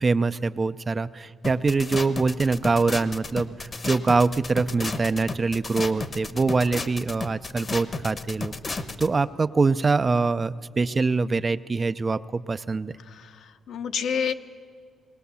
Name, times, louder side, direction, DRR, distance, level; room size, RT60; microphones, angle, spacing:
voice 1, 0.0-8.5 9.0-12.9, right 4 dB, 25° right, 13 dB, 0.4 m, -24 dB
sound 1, 1.4-9.1, left 3 dB, 30° left, 0.9 m, -33 dB
voice 2, 13.0-14.3, left 7 dB, 65° left, 8 dB, 0.9 m, -29 dB
20.5 x 19.0 x 6.9 m, 2.1 s
cardioid pair, 140°, 0 cm